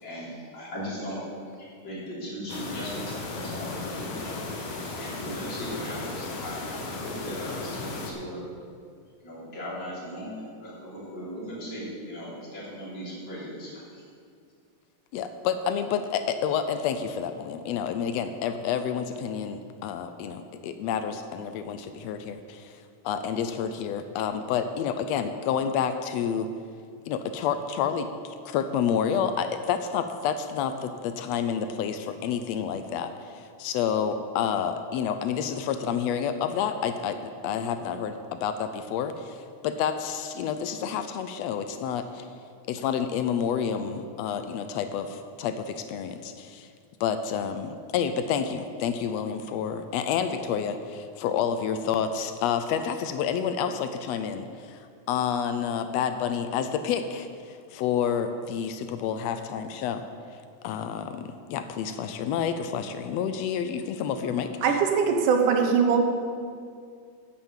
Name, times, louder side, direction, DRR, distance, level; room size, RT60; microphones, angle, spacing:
voice 1, 0.0-1.2 1.6-4.4 5.0-8.4 9.2-14.0, equal, 40° left, -8 dB, 4.0 m, -38 dB
sound 1, 2.5-8.1, left 3 dB, 55° left, 1.6 m, -35 dB
voice 2, 15.1-22.7 23.0-26.5 27.1-42.3 42.7-46.7 47.0-60.0 60.6-64.5, left 7 dB, 85° left, 9 dB, 1.5 m, -29 dB
voice 3, 64.6-66.0, right 6 dB, 85° right, 3 dB, 2.7 m, -21 dB
10.0 x 7.6 x 7.3 m, 2.2 s
omnidirectional pair, 3.5 m